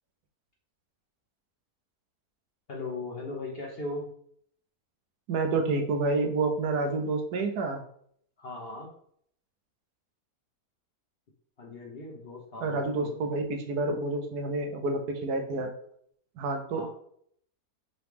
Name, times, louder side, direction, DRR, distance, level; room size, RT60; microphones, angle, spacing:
voice 1, 2.7-4.1 8.4-8.9 11.6-13.2 16.7-16.9, left 2 dB, 50° left, -1 dB, 0.8 m, -38 dB
voice 2, 5.3-7.8 12.6-15.7 16.4-16.9, right 3 dB, 85° right, 4 dB, 1.2 m, -29 dB
3.9 x 3.0 x 3.4 m, 0.64 s
omnidirectional pair, 1.7 m